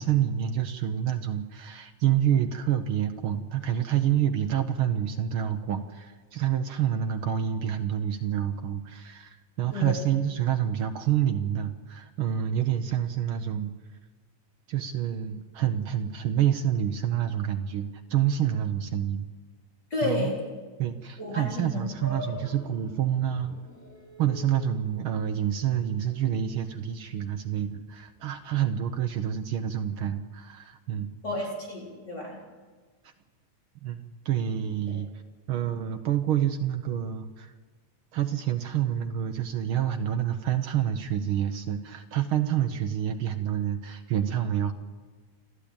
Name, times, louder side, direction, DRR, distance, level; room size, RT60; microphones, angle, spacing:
voice 1, 0.0-13.7 14.7-19.3 20.0-20.3 20.8-23.6 24.2-31.1 33.0-33.1 33.8-35.1 35.5-37.5 38.1-44.7, right 10 dB, 80° right, 7 dB, 1.1 m, -28 dB
voice 2, 19.9-20.4 21.2-21.8 31.2-32.4, left 2 dB, 30° left, -3 dB, 4.8 m, -31 dB
sound 1, 22.0-28.4, equal, 5° left, 3.6 m, -46 dB
28.5 x 13.0 x 8.7 m, 1.4 s
omnidirectional pair, 3.7 m